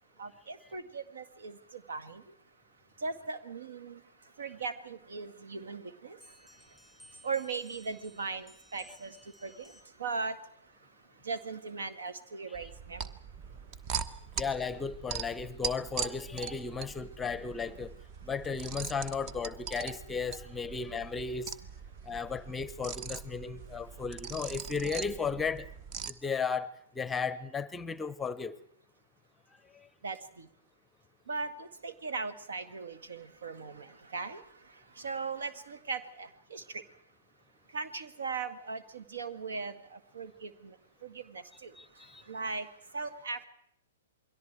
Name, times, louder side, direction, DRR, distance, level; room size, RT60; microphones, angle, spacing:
voice 1, 0.2-2.2 3.0-4.0 4.4-6.2 7.2-9.2 9.4-10.4 11.2-13.1 30.0-30.5 31.3-34.4 35.0-36.8 37.7-40.8 41.0-41.7 42.3-42.7 42.9-43.4, right 4 dB, 65° right, 1.9 m, -38 dB
sound 1, 6.2-10.1, equal, 5° right, 3.0 m, -58 dB
sound 2, 12.5-26.1, right 6 dB, 35° right, 1.1 m, -41 dB
voice 2, 14.4-17.9 18.2-21.5 22.1-25.7 26.1-26.7 26.9-28.6 29.7-29.9 41.7-42.2, left 5 dB, 10° left, 0.9 m, -35 dB
28.5 x 22.5 x 4.7 m
figure-of-eight pair, 115°, 0 cm